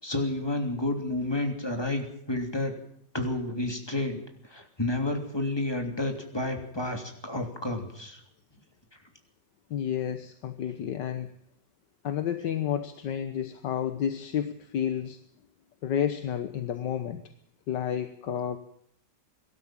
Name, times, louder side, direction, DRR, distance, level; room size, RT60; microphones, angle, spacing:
voice 1, 0.0-2.7 3.1-4.2 4.4-8.2, left 2 dB, 15° left, 3 dB, 3.0 m, -30 dB
voice 2, 9.7-11.3 12.0-15.2 15.8-17.2 17.7-18.6, left 9 dB, 75° left, 9 dB, 1.7 m, -30 dB
23.5 x 12.5 x 8.8 m, 0.68 s
omnidirectional pair, 1.9 m